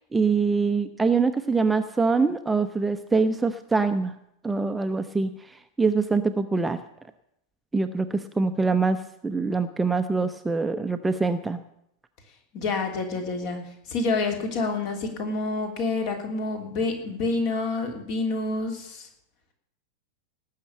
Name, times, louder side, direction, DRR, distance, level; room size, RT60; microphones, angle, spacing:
voice 1, 0.1-4.1 4.4-5.3 5.8-6.8 7.7-11.6, right 4 dB, 10° right, 9 dB, 0.7 m, -24 dB
voice 2, 12.5-13.6 13.9-19.1, left 3 dB, 45° left, 4 dB, 3.3 m, -28 dB
18.5 x 6.6 x 8.7 m, 0.78 s
figure-of-eight pair, 90°, 0 cm